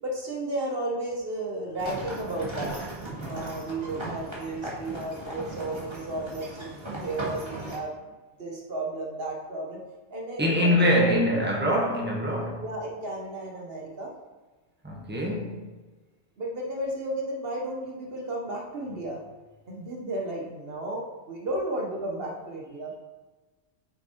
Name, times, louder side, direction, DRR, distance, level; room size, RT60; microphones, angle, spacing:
voice 1, 0.0-2.7 3.2-8.1 8.4-9.8 10.1-11.4 12.6-14.1 16.4-19.2 19.7-22.9, right 1 dB, 60° right, -1 dB, 1.4 m, -33 dB
sound 1, 1.8-7.8, right 2 dB, 25° right, 2.1 m, -37 dB
voice 2, 10.4-12.6 14.8-15.7, equal, 10° right, -2 dB, 1.4 m, -24 dB
7.1 x 6.1 x 4.4 m, 1.2 s
omnidirectional pair, 1.1 m